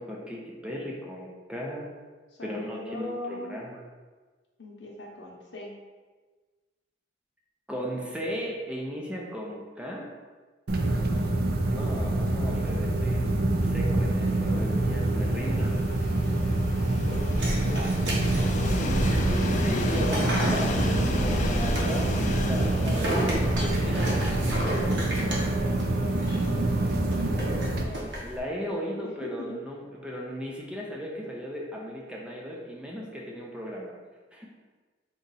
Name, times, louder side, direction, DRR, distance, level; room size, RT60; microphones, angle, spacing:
voice 1, 0.0-1.9 2.4-3.8 7.7-10.1 11.7-13.3 13.6-15.8 19.2-25.4 28.2-34.0 34.3-34.5, equal, 5° right, -3 dB, 0.5 m, -36 dB
voice 2, 2.3-3.6 4.6-5.7 10.7-11.3 17.0-17.4 17.6-17.9 18.2-18.9 26.5-28.1 29.0-29.6, left 2 dB, 80° left, -2 dB, 0.9 m, -40 dB
sound 1, 10.7-27.8, right 2 dB, 60° right, 0.4 m, -26 dB
Train, 14.0-26.9, left 2 dB, 45° left, 0.4 m, -36 dB
sound 2, 17.1-28.4, equal, 75° right, 1.0 m, -34 dB
4.1 x 2.4 x 4.0 m, 1.3 s
head